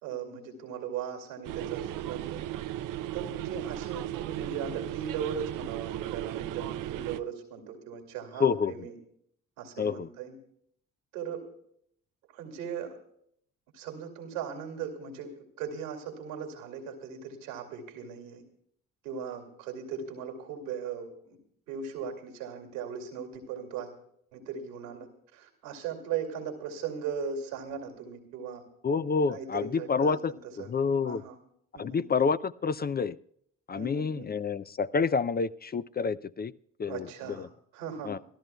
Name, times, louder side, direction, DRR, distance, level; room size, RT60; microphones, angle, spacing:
voice 1, 0.0-2.4 3.1-8.9 9.6-10.4 11.1-11.4 12.3-13.0 13.7-18.4 19.0-21.4 21.7-23.9 24.3-28.6 29.3-30.7 31.0-31.4 31.7-32.1 33.7-34.3 36.9-38.2, right 7 dB, 85° right, 3 dB, 2.5 m, -38 dB
sound 1, 1.4-7.2, right 13 dB, 60° right, 0.6 m, -36 dB
voice 2, 8.4-8.7 9.8-10.1 28.8-31.2 31.8-33.2 33.7-36.5 36.8-37.1 37.4-37.5 38.0-38.2, left 5 dB, 25° left, 14 dB, 0.5 m, -28 dB
27.5 x 13.5 x 2.3 m, 0.68 s
hypercardioid pair, 50°, 36 cm